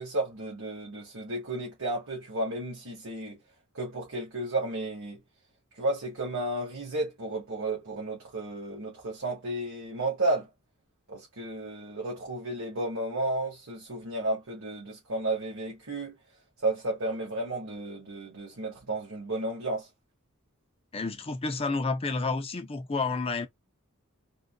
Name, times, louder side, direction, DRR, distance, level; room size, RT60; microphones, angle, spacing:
voice 1, 0.0-3.4 3.7-5.2 5.8-10.5 11.1-16.1 16.6-19.9, right 2 dB, 75° right, 1.6 m, -32 dB
voice 2, 20.9-23.5, left 3 dB, 25° left, 0.5 m, -30 dB
3.8 x 2.4 x 2.3 m
head